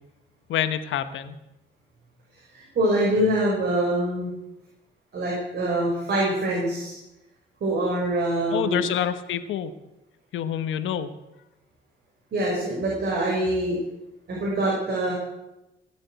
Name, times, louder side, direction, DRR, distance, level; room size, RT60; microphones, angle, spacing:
voice 1, 0.5-1.4 8.5-9.7 10.3-11.1, left 9 dB, 80° left, 11 dB, 1.2 m, -27 dB
voice 2, 2.5-4.3 5.1-7.0 7.6-8.8 12.3-13.8 14.3-15.1, right 1 dB, 55° right, -4 dB, 5.7 m, -24 dB
17.0 x 8.3 x 8.1 m, 0.94 s
cardioid pair, 90°, 20 cm